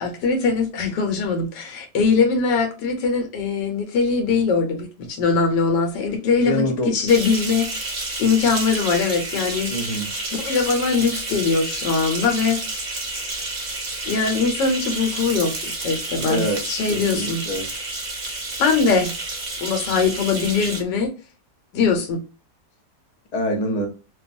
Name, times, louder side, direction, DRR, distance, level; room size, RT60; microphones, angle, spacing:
voice 1, 0.0-9.7 10.3-12.6 14.0-15.5 15.8-17.4 18.6-19.1 19.6-21.1 21.7-22.2, left 4 dB, 85° left, 1.4 m, -21 dB
voice 2, 6.4-6.9 9.7-10.1 16.3-16.6 16.9-17.7 23.3-23.9, left 1 dB, 60° left, 0.4 m, -25 dB
sound 1, 7.1-20.8, right 2 dB, 45° right, 0.8 m, -30 dB
3.0 x 2.3 x 2.5 m
omnidirectional pair, 1.8 m